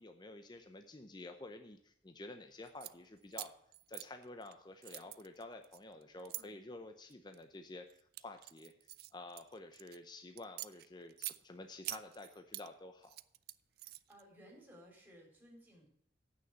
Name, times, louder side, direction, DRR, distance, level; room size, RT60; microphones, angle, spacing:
voice 1, 0.0-3.5 3.9-13.2, left 2 dB, 25° left, 6 dB, 0.7 m, -51 dB
sound 1, 2.6-2.9 3.3-4.5 4.8-6.4 7.1-7.4 7.9-10.0 10.4-11.4 11.8-12.7 13.0-14.2, right 17 dB, 60° right, 0.3 m, -46 dB
voice 2, 13.8-15.9, equal, 10° right, -1 dB, 3.6 m, -59 dB
8.5 x 6.3 x 7.9 m, 0.67 s
head